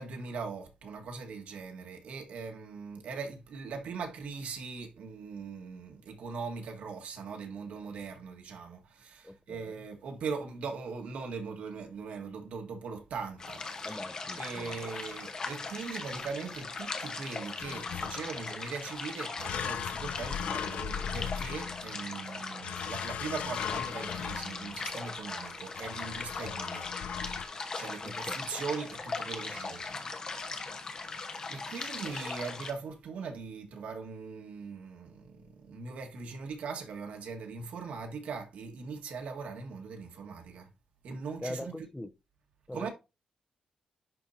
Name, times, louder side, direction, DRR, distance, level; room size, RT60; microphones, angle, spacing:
voice 1, 0.0-14.0 14.4-26.9 27.8-30.1 30.4-30.9 31.5-40.7 41.0-41.9 42.7-42.9, right 5 dB, 80° right, 1.5 m, -40 dB
voice 2, 9.2-9.8 13.8-14.8 28.0-28.4 41.4-42.1 42.7-42.9, left 1 dB, 10° left, 0.6 m, -41 dB
sound 1, 13.4-32.7, left 4 dB, 30° left, 1.0 m, -39 dB
sound 2, 17.6-18.4 19.4-22.1 22.6-24.8 25.7-27.5, left 9 dB, 70° left, 0.3 m, -38 dB
10.5 x 4.2 x 2.6 m
wide cardioid pair, 170°, 2 cm